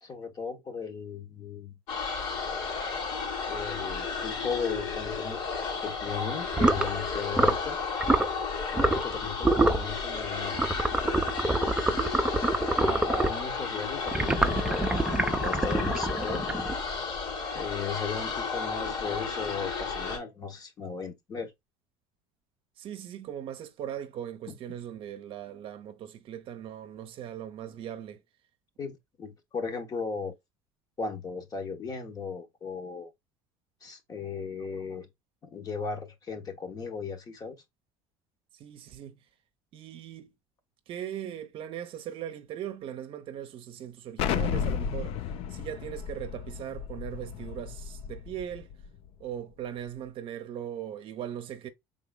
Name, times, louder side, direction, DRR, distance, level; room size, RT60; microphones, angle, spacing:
voice 1, 0.0-1.8 3.5-5.4 5.8-7.8 8.6-10.6 12.8-16.4 17.5-21.5 24.5-24.6 28.8-30.3 31.0-33.1 33.8-35.1 35.4-37.6, left 5 dB, 35° left, 1.1 m, -36 dB
sound 1, 1.9-20.2, left 5 dB, 75° left, 2.6 m, -33 dB
sound 2, 6.5-6.9 7.3-7.7 8.0-8.3 8.8-9.1 9.4-9.9 10.5-13.4 14.1-16.9, right 2 dB, 10° right, 0.6 m, -26 dB
voice 2, 22.8-28.2 38.5-39.2 39.7-40.3 40.9-45.2 45.5-48.7 49.2-51.7, right 10 dB, 50° right, 0.7 m, -39 dB
Explosion, 44.2-48.9, left 8 dB, 60° left, 0.4 m, -33 dB
4.9 x 3.8 x 2.2 m
supercardioid pair, 115°, 12 cm